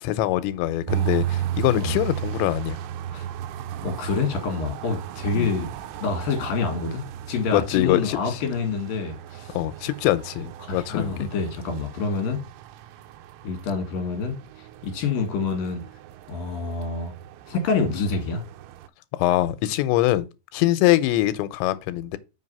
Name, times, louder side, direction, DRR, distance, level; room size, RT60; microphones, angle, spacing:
voice 1, 0.0-2.8 5.4-5.5 7.5-8.4 9.5-11.3 19.1-22.2, left 15 dB, 85° left, 2.9 m, -23 dB
sound 1, 0.9-18.9, right 11 dB, 80° right, 2.5 m, -35 dB
voice 2, 3.8-5.7 6.0-9.6 10.6-12.4 13.4-14.4 14.8-15.8 16.3-17.1 17.5-18.4, left 4 dB, 60° left, 3.2 m, -27 dB
6.3 x 4.7 x 5.4 m
omnidirectional pair, 5.1 m